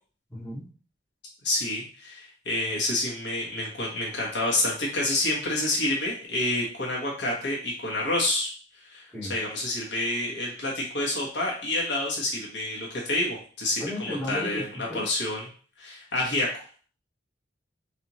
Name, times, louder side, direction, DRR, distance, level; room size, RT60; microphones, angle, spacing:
voice 1, 0.3-0.7 9.1-9.3 13.8-15.1, left 1 dB, ahead, -10 dB, 2.0 m, -34 dB
voice 2, 1.4-8.5 8.9-15.5 15.8-16.5, left 2 dB, 70° left, -3 dB, 1.2 m, -28 dB
4.2 x 3.4 x 3.0 m, 0.41 s
head